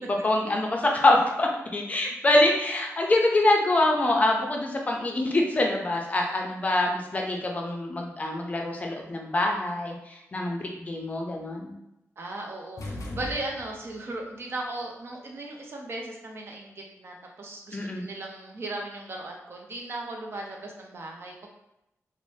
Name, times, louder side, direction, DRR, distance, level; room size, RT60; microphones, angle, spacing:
voice 1, 0.0-11.7 17.7-18.0, left 2 dB, 30° left, 1 dB, 0.4 m, -25 dB
voice 2, 12.2-21.5, right 2 dB, 50° right, 0 dB, 0.5 m, -37 dB
sound 1, 12.8-14.0, left 1 dB, 85° left, 0.4 m, -37 dB
2.6 x 2.0 x 3.2 m, 0.86 s
wide cardioid pair, 140°, 5 cm